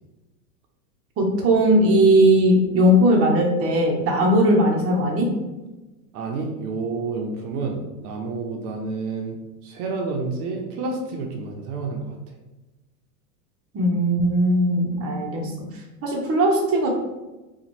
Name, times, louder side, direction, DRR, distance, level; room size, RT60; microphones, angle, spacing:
voice 1, 1.2-5.3 13.7-15.5 16.0-16.9, right 1 dB, 30° right, 0 dB, 0.8 m, -18 dB
voice 2, 6.1-12.2, right 3 dB, 65° right, 2 dB, 0.8 m, -29 dB
3.0 x 2.4 x 4.2 m, 1.1 s
supercardioid pair, 125°, 48 cm